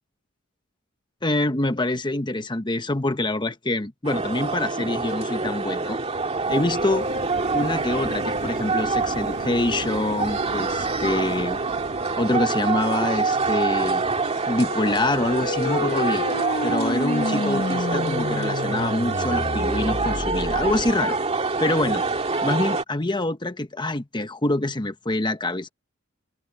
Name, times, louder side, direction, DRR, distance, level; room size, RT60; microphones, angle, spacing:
voice 1, 1.2-6.0 6.5-7.1 7.5-11.6 12.2-14.0 14.5-16.3 16.6-21.2 21.6-22.0 22.4-25.7, left 2 dB, 20° left, 1.1 m, -25 dB
sound 1, 4.0-22.8, right 3 dB, 30° right, 2.2 m, -26 dB
sound 2, 5.1-16.4 17.0-17.1, right 2 dB, 55° right, 2.5 m, -40 dB
sound 3, 14.0-20.9, left 2 dB, 45° left, 1.2 m, -30 dB
head